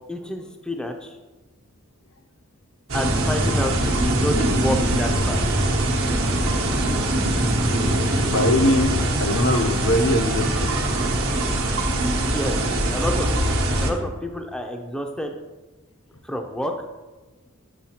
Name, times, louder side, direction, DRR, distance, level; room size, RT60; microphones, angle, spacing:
voice 1, 0.1-1.1 2.9-3.7 4.0-5.4 12.1-12.6 12.9-13.5 13.8-15.3 16.2-16.7, equal, 5° left, 3 dB, 0.4 m, -28 dB
sound 1, 2.9-13.9, right 1 dB, 85° right, 1.0 m, -22 dB
voice 2, 8.3-10.7, left 1 dB, 65° left, 5 dB, 0.7 m, -22 dB
7.6 x 6.3 x 2.8 m, 1.2 s
head